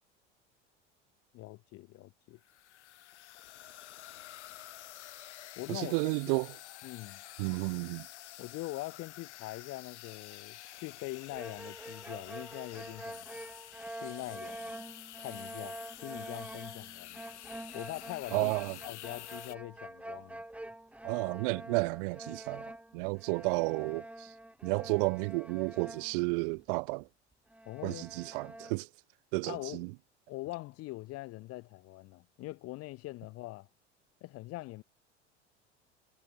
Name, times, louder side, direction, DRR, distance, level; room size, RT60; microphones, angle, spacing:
voice 1, 1.3-2.4 5.6-5.9 6.8-7.2 8.4-13.3 13.9-14.7 15.2-17.2 17.7-18.5 18.8-20.4 27.6-28.1 29.4-29.8 30.3-33.7 34.2-34.8, left 19 dB, 40° left, 1.0 m, -43 dB
sound 1, 2.4-19.6, left 13 dB, 70° left, 3.6 m, -49 dB
voice 2, 5.7-6.5 7.4-8.1 18.3-18.8 21.0-24.3 24.6-27.1 27.8-28.9 29.3-29.9, right 29 dB, 50° right, 0.4 m, -32 dB
sound 2, 11.3-26.7 27.0-27.1 27.5-28.7, right 1 dB, 5° right, 1.4 m, -46 dB
figure-of-eight pair, 75°, 36 cm